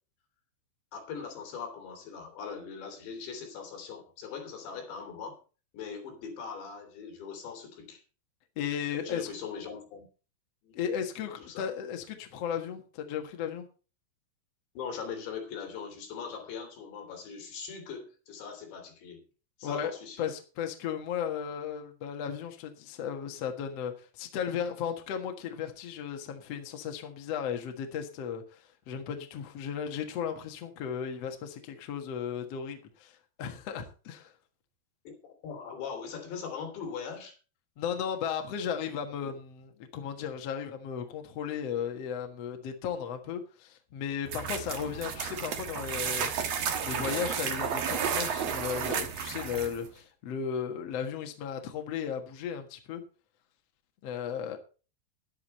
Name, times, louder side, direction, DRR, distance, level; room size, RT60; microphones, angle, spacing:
voice 1, 0.9-5.4 5.7-8.0 8.9-10.1 10.6-10.8 11.5-11.7 14.8-19.3 19.6-20.3 35.2-37.4, left 6 dB, 75° left, 5.4 m, -40 dB
voice 2, 8.6-9.3 10.7-13.7 19.6-19.9 20.2-33.1 33.4-34.3 37.8-53.0 54.0-54.6, left 8 dB, 60° left, 1.7 m, -35 dB
sound 1, 44.3-49.9, right 7 dB, 80° right, 1.4 m, -32 dB
11.5 x 11.0 x 4.3 m
omnidirectional pair, 5.1 m